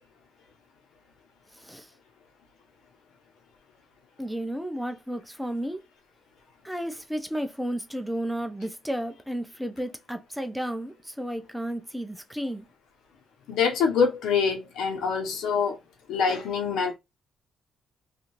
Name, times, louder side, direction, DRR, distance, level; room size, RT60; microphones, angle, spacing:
voice 1, 4.2-5.8 6.6-12.7, equal, ahead, 0.6 m, -32 dB
voice 2, 13.5-15.8 16.1-16.9, left 6 dB, 80° left, 0.9 m, -25 dB
2.7 x 2.5 x 3.0 m
cardioid pair, 90°, 0 cm